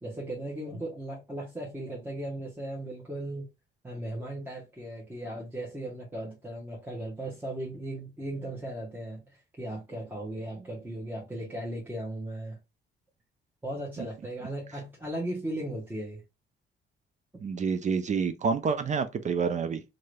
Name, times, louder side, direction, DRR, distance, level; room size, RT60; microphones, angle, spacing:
voice 1, 0.0-3.5 3.8-12.6 13.6-16.2, right 1 dB, 10° right, 1.0 m, -37 dB
voice 2, 17.4-19.8, right 5 dB, 40° right, 0.4 m, -28 dB
2.7 x 2.6 x 3.2 m
cardioid pair, 90°, 20 cm